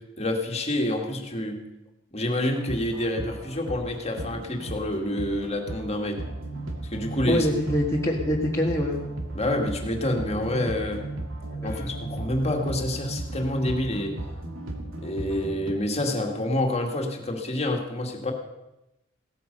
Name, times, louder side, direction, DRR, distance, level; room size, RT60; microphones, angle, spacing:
voice 1, 0.2-1.6 2.1-6.2 6.9-7.5 9.3-11.0 11.6-14.1 15.0-18.3, left 1 dB, 30° left, 2 dB, 2.1 m, -27 dB
sound 1, 2.5-15.7, right 2 dB, 75° right, 2.2 m, -35 dB
voice 2, 7.3-9.0 11.6-11.9, left 1 dB, 15° left, -4 dB, 1.7 m, -25 dB
17.0 x 14.0 x 5.4 m, 0.93 s
head